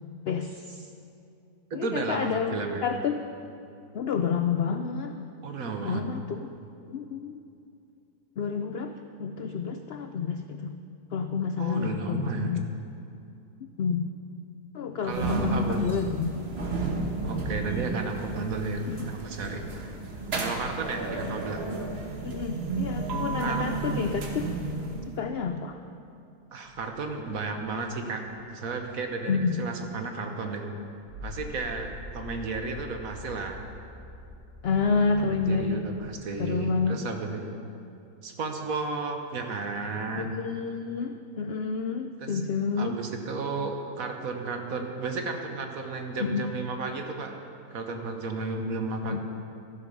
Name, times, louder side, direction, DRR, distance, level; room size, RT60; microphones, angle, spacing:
voice 1, 0.3-0.9 1.7-3.3 3.9-5.2 5.8-6.5 6.9-7.4 8.4-10.7 11.1-12.6 13.8-14.1 14.7-16.4 18.9-19.1 21.2-21.3 22.2-24.5 25.2-25.8 29.3-29.6 34.6-35.9 36.4-37.0 40.1-43.0 46.2-46.5 49.1-49.2, left 5 dB, 75° left, 7 dB, 0.5 m, -29 dB
voice 2, 1.7-2.9 5.4-6.0 11.6-12.5 15.0-15.8 17.2-19.6 20.4-21.6 23.4-23.6 26.5-28.2 28.5-30.7 31.2-33.6 35.2-37.5 38.2-40.4 42.2-42.4 42.8-47.3 47.7-49.2, right 4 dB, 65° right, 4 dB, 1.5 m, -33 dB
sound 1, 15.1-25.2, right 3 dB, 45° right, 1.4 m, -32 dB
sound 2, 26.6-29.9 30.7-36.1, left 2 dB, 90° right, 3.0 m, -45 dB
13.5 x 12.0 x 5.4 m, 2.6 s
omnidirectional pair, 1.7 m